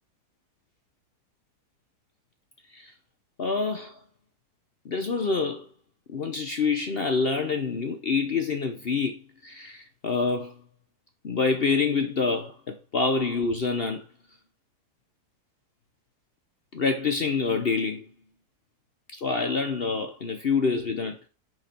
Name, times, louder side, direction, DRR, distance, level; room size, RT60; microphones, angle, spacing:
voice 1, 3.4-4.0 4.8-5.7 6.1-10.5 11.2-14.0 16.7-18.1 19.2-21.2, left 4 dB, 45° left, 0.8 m, -27 dB
6.0 x 5.6 x 4.2 m
omnidirectional pair, 1.7 m